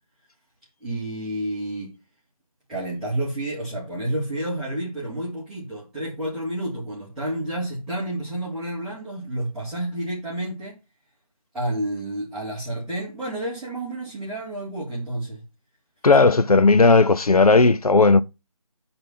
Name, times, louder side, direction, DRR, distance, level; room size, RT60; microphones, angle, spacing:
voice 1, 0.8-1.9 2.7-10.8 11.5-15.4, right 1 dB, ahead, 2.0 m, -30 dB
voice 2, 16.0-18.2, left 3 dB, 80° left, 0.8 m, -15 dB
8.6 x 4.5 x 5.8 m
figure-of-eight pair, 165°, 19 cm